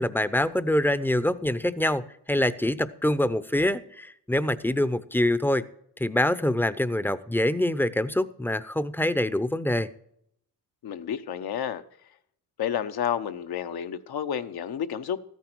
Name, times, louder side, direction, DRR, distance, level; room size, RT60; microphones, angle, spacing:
voice 1, 0.0-5.6 6.0-9.9, left 1 dB, 5° left, 0.6 m, -25 dB
voice 2, 10.8-11.8 12.6-15.2, left 9 dB, 70° left, 1.0 m, -30 dB
13.5 x 9.4 x 4.5 m
cardioid pair, 75°, 39 cm